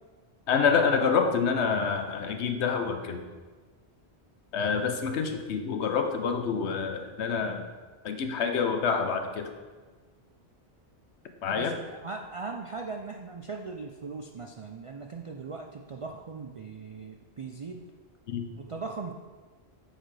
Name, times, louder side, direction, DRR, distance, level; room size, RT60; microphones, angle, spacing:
voice 1, 0.5-3.2 4.5-7.6 8.0-9.5 11.4-11.7 18.3-18.5, left 5 dB, 85° left, 6 dB, 1.1 m, -27 dB
voice 2, 11.5-17.8 18.6-19.1, right 4 dB, 60° right, 2 dB, 0.3 m, -39 dB
9.1 x 6.6 x 3.3 m, 1.4 s
omnidirectional pair, 1.1 m